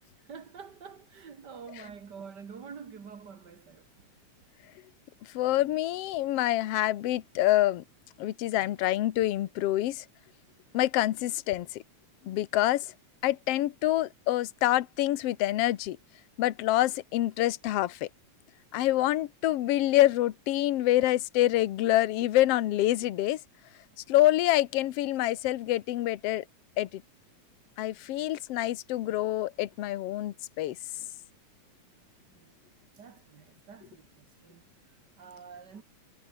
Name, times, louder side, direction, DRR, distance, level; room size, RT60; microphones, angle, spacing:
voice 1, 0.3-3.9 32.3-32.5 33.0-35.8, right 6 dB, 40° right, 2.1 m, -47 dB
voice 2, 5.3-7.8 8.2-10.0 10.7-11.8 12.2-12.9 13.2-16.0 16.4-18.1 18.7-23.4 24.1-26.4 26.8-27.0 27.8-30.8, left 15 dB, 65° left, 1.8 m, -26 dB
omnidirectional pair, 3.4 m